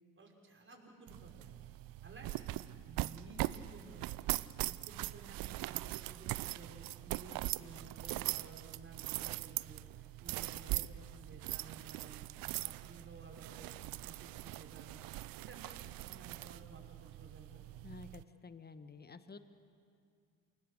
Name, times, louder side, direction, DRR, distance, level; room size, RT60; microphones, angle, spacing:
voice 1, 0.2-1.6 2.0-4.1 4.6-12.2 12.6-15.0 15.4-17.6, right 2 dB, 30° right, 0 dB, 5.7 m, -55 dB
sound 1, 1.1-18.2, right 17 dB, 55° right, 0.6 m, -41 dB
voice 2, 17.8-19.4, left 4 dB, 25° left, 11 dB, 1.4 m, -51 dB
28.5 x 18.0 x 6.7 m, 2.3 s
hypercardioid pair, 55°, 42 cm